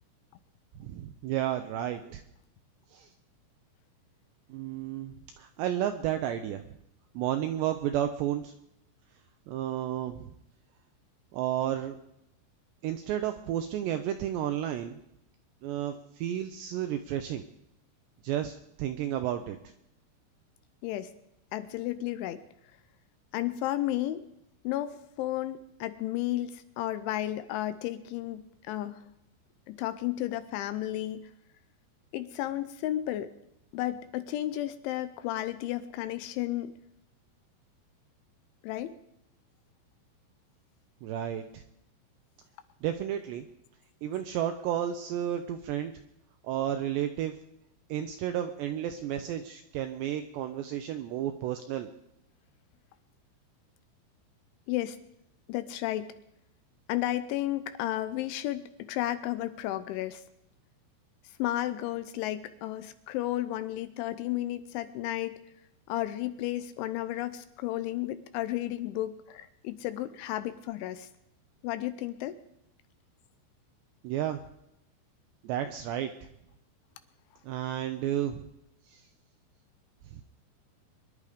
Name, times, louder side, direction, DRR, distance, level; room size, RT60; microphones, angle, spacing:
voice 1, 0.8-2.2 2.9-3.1 4.5-6.6 7.2-8.5 9.5-10.3 11.3-12.0 12.8-15.0 15.6-17.4 18.2-19.6 41.0-41.6 42.8-43.5 44.0-45.9 46.4-47.3 47.9-51.9 74.0-74.4 75.4-76.1 77.4-78.4 78.9-79.0 80.1-80.2, right 11 dB, 80° right, 7 dB, 2.6 m, -32 dB
voice 2, 20.8-21.1 21.5-22.4 23.3-24.3 24.6-29.1 29.7-31.3 32.1-33.3 33.7-36.7 38.6-39.0 54.7-55.0 55.5-56.2 56.9-60.2 61.3-65.4 65.9-71.1 71.6-72.4, left 14 dB, 80° left, 11 dB, 3.0 m, -33 dB
24.0 x 11.0 x 5.1 m, 0.81 s
omnidirectional pair, 5.7 m